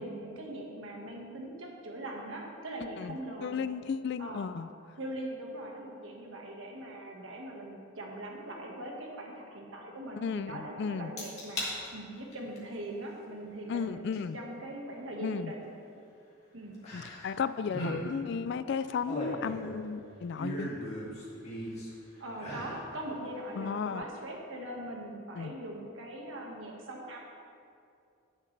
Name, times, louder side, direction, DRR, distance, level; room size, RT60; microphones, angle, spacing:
voice 1, 0.0-3.6 4.2-4.4 5.0-14.0 14.3-15.7 16.5-16.8 22.2-27.2, right 1 dB, 65° right, -1 dB, 1.7 m, -41 dB
voice 2, 3.4-4.7 10.2-11.1 13.7-14.4 15.2-15.5 16.9-20.7 23.6-24.0 25.4-25.5, left 6 dB, 55° left, 13 dB, 0.3 m, -34 dB
sound 1, 11.2-11.7 12.2-12.6 14.1-14.2 16.8-17.4 17.6-18.0 18.8-19.8 20.4-21.9 22.3-22.8 23.3-23.4, equal, 30° left, 2.5 m, -38 dB
17.0 x 7.4 x 3.3 m, 2.5 s
head